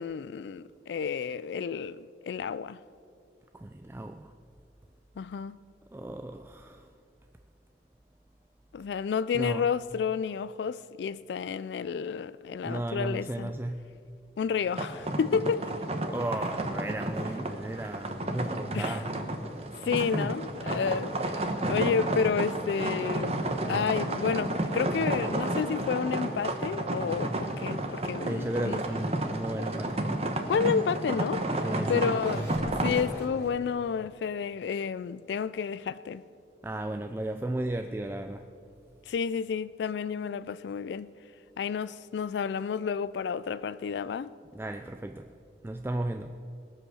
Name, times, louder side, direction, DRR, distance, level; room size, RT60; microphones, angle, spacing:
voice 1, 0.0-2.8 5.2-5.6 8.7-13.5 14.4-15.7 18.7-19.0 19.8-21.1 21.7-28.8 30.5-31.5 31.9-36.2 39.1-41.1 41.6-44.3, left 6 dB, 75° left, 0.3 m, -30 dB
voice 2, 3.5-4.3 5.9-6.9 9.3-9.7 12.6-13.9 16.1-19.2 19.5-20.3 28.2-30.1 31.6-32.2 36.6-38.5 44.5-45.3 45.6-46.4, right 1 dB, 15° right, 0.3 m, -35 dB
sound 1, 14.7-33.0, right 1 dB, 35° right, 1.0 m, -31 dB
Fador - in out, 30.7-33.9, equal, 15° left, 2.7 m, -44 dB
20.0 x 7.8 x 6.2 m
head